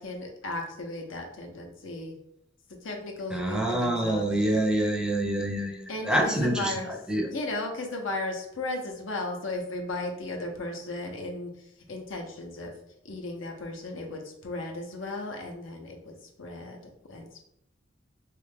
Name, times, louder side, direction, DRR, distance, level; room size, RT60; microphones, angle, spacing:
voice 1, 0.0-2.1 2.8-4.5 5.9-6.9 7.2-11.5 11.9-12.7 13.0-16.8 17.1-17.5, left 2 dB, 75° left, 3 dB, 0.7 m, -35 dB
voice 2, 3.3-7.3, right 1 dB, 5° right, 1 dB, 0.5 m, -27 dB
3.2 x 2.4 x 3.4 m, 0.81 s
head